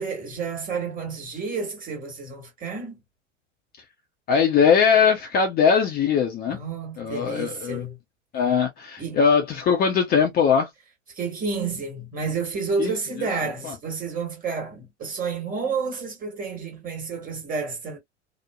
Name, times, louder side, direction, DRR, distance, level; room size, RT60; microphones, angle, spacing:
voice 1, 0.0-3.0 6.5-8.0 9.0-9.2 11.1-18.0, right 4 dB, 25° right, 1.5 m, -30 dB
voice 2, 4.3-6.6 7.0-7.9 8.3-10.7 12.8-12.9 13.6-13.7, left 6 dB, 25° left, 0.6 m, -20 dB
3.0 x 2.0 x 2.2 m
figure-of-eight pair, 85°, 36 cm